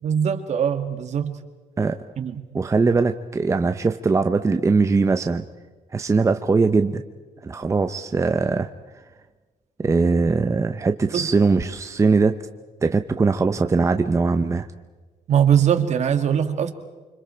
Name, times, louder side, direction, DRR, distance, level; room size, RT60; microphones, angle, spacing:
voice 1, 0.0-1.3 2.2-2.4 11.1-11.3 15.3-16.7, right 8 dB, 60° right, 7 dB, 2.0 m, -21 dB
voice 2, 2.5-5.4 5.9-7.0 7.4-8.7 9.8-12.4 12.8-14.7, right 4 dB, 20° right, 7 dB, 0.8 m, -20 dB
29.5 x 25.5 x 4.5 m, 1.3 s
cardioid pair, 115°, 14 cm